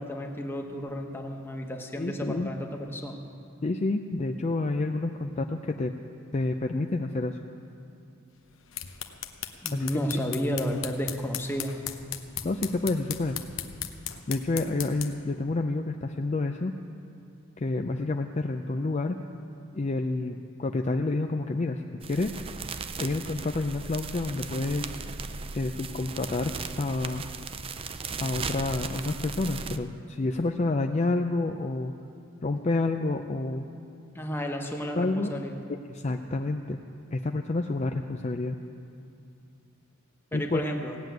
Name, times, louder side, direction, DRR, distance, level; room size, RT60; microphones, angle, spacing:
voice 1, 0.0-3.2 9.6-11.8 34.1-35.6 40.3-41.0, equal, 10° left, 2 dB, 1.2 m, -32 dB
voice 2, 2.0-2.5 3.6-5.9 6.3-7.4 9.7-10.2 12.4-13.4 14.3-16.7 17.6-19.2 19.7-21.8 22.1-22.4 23.0-24.9 25.5-27.2 28.2-31.9 32.4-33.7 35.0-35.3 35.7-36.8 37.1-38.6 40.3-40.7, left 2 dB, 35° left, 5 dB, 0.4 m, -29 dB
sound 1, 8.5-15.3, left 10 dB, 70° left, 0.8 m, -38 dB
sound 2, 22.0-29.8, right 5 dB, 30° right, 0.5 m, -37 dB
17.0 x 7.7 x 9.2 m, 2.6 s
head